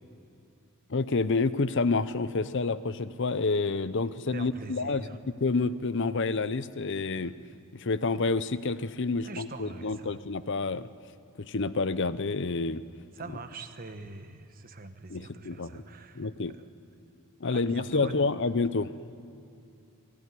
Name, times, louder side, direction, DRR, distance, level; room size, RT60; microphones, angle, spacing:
voice 1, 0.9-5.1 5.4-7.3 7.7-10.9 11.4-12.8 15.1-15.8 16.1-16.5 17.4-18.9, left 3 dB, 55° left, 15 dB, 0.7 m, -28 dB
voice 2, 4.3-5.2 9.2-10.2 13.1-16.3 16.5-16.6 17.5-18.4, right 3 dB, 40° right, 8 dB, 1.3 m, -43 dB
27.0 x 17.0 x 9.9 m, 2.6 s
head